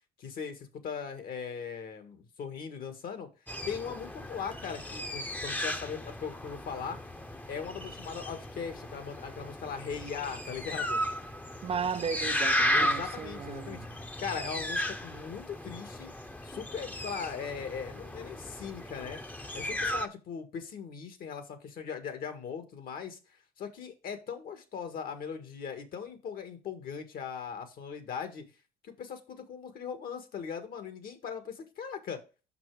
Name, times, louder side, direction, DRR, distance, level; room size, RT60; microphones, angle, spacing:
voice 1, 0.2-3.3 3.7-7.0 7.5-11.0 12.7-16.1 16.4-19.2 19.5-28.5 28.8-32.2, left 6 dB, 60° left, 1.8 m, -39 dB
sound 1, 3.5-20.1, left 1 dB, 10° left, 0.8 m, -35 dB
voice 2, 11.6-13.9, right 6 dB, 35° right, 0.4 m, -35 dB
6.0 x 6.0 x 4.8 m
cardioid pair, 110°, 17 cm